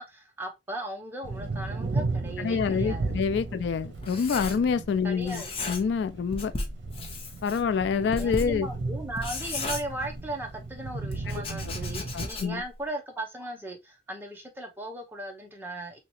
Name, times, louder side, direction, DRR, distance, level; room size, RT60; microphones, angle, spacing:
voice 1, 0.0-3.2 3.5-3.6 5.0-5.5 8.1-16.0, right 1 dB, 10° right, 0.7 m, -37 dB
sound 1, 1.2-12.3, right 3 dB, 85° right, 0.6 m, -35 dB
voice 2, 2.4-6.5 7.4-8.7 12.1-12.6, left 6 dB, 65° left, 0.3 m, -27 dB
Writing, 3.0-4.9 5.2-6.0 6.3-10.5 11.1-12.7, left 3 dB, 30° left, 0.6 m, -36 dB
3.2 x 2.8 x 3.0 m
head